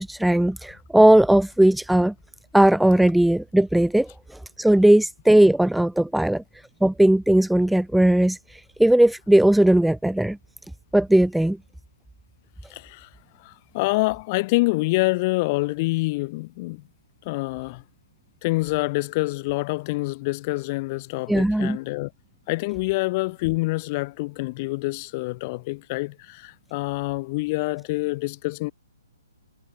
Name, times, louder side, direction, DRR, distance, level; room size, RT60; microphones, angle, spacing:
voice 1, 0.0-2.1 2.5-6.4 6.8-10.4 10.9-11.6 21.3-21.8, right 1 dB, ahead, 1.9 m, -18 dB
voice 2, 12.7-13.1 13.4-16.8 17.2-17.8 18.4-22.1 22.5-28.7, left 23 dB, 30° left, 3.7 m, -26 dB
hypercardioid pair, 165°, 2 cm